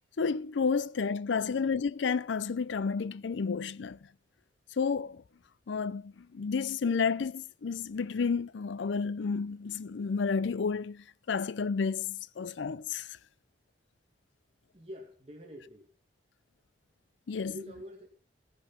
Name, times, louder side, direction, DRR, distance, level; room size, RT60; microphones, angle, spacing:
voice 1, 0.2-4.0 4.8-5.2 5.7-13.1 17.3-17.5, left 5 dB, 85° left, 0.5 m, -31 dB
voice 2, 14.7-15.9 17.4-18.1, equal, 35° right, 2.3 m, -46 dB
16.5 x 8.2 x 4.4 m
head